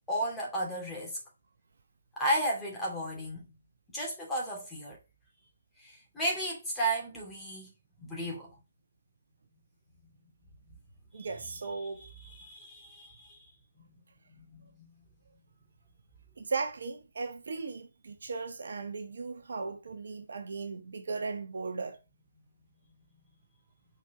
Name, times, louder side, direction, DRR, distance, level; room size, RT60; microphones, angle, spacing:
voice 1, 0.1-1.2 2.2-3.5 3.9-5.0 5.8-7.7 8.0-8.5 11.1-11.3 12.0-13.5 14.4-14.9, right 1 dB, 5° left, 2.4 m, -34 dB
voice 2, 11.1-12.0 16.4-22.0, right 4 dB, 60° right, 1.0 m, -37 dB
6.0 x 4.4 x 4.7 m
figure-of-eight pair, 140°, 0 cm